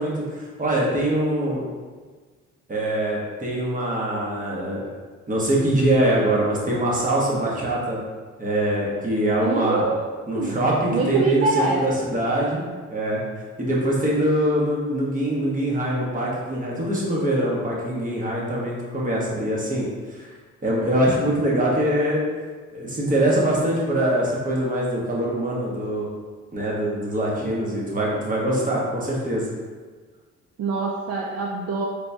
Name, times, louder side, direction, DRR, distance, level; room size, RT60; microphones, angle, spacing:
voice 1, 0.0-1.6 2.7-4.9 5.3-8.0 8.4-9.8 10.3-12.6 12.9-13.2 13.6-20.3 20.6-22.2 22.7-26.1 26.5-29.5, right 1 dB, 25° right, -4 dB, 1.2 m, -23 dB
voice 2, 9.4-10.6 10.9-11.9 30.6-31.9, right 3 dB, 55° right, -2 dB, 0.5 m, -25 dB
4.0 x 3.5 x 2.7 m, 1.4 s
cardioid pair, 90°, 30 cm